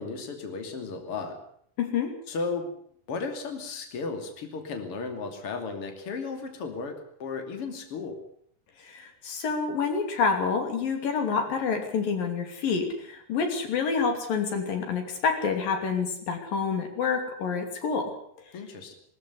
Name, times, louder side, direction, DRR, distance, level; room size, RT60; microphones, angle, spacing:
voice 1, 0.0-1.4 2.3-2.7 3.1-6.9 7.2-8.2 18.5-18.9, left 4 dB, 45° left, 5 dB, 3.5 m, -34 dB
voice 2, 1.8-2.1 8.8-18.1, left 5 dB, 85° left, 5 dB, 4.6 m, -28 dB
20.5 x 13.5 x 9.5 m, 0.67 s
omnidirectional pair, 3.9 m